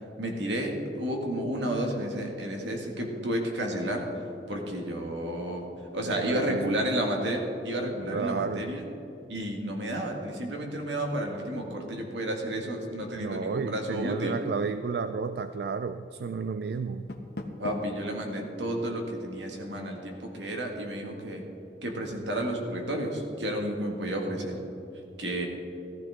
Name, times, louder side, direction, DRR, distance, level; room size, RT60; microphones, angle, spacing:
voice 1, 0.2-4.1 4.5-5.7 5.9-8.8 9.3-14.4 17.6-21.5 21.8-24.6 25.2-25.5, right 1 dB, 75° right, 1 dB, 2.0 m, -31 dB
voice 2, 6.0-6.7 7.8-8.7 13.1-17.1, right 5 dB, 60° right, 11 dB, 0.3 m, -32 dB
Door, 16.8-18.0, left 1 dB, 60° left, 1.0 m, -39 dB
14.5 x 14.0 x 3.7 m, 2.9 s
head